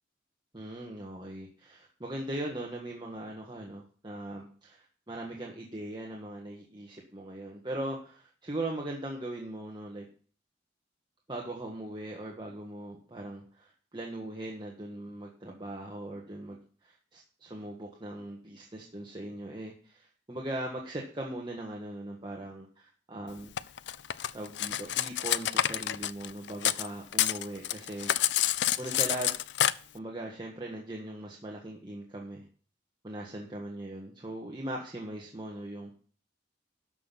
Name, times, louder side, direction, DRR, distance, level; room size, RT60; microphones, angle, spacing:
voice 1, 0.5-10.1 11.3-23.5 24.3-28.5 28.8-29.4 29.9-32.4 33.0-35.9, right 1 dB, 25° right, -1 dB, 1.5 m, -40 dB
Cutlery silverware, 23.6-26.9 27.1-29.7, left 12 dB, 70° left, 0.4 m, -28 dB
12.5 x 5.9 x 5.8 m, 0.42 s
head